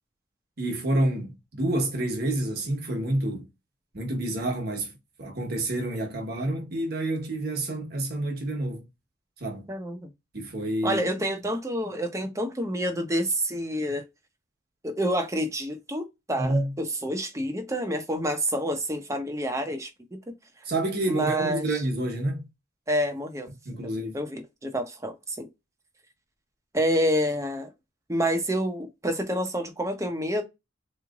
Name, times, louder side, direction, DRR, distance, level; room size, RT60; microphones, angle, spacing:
voice 1, 0.6-3.5 3.9-4.9 5.2-8.8 9.4-9.8 10.3-11.1 16.4-16.7 20.6-22.5 23.6-24.2, right 1 dB, 55° right, 1.3 m, -28 dB
voice 2, 9.7-10.1 10.8-14.0 14.8-20.2 21.1-21.8 22.9-23.5 24.1-25.5 26.7-27.7 28.1-30.4, equal, 15° right, 0.9 m, -28 dB
4.1 x 3.2 x 2.4 m
head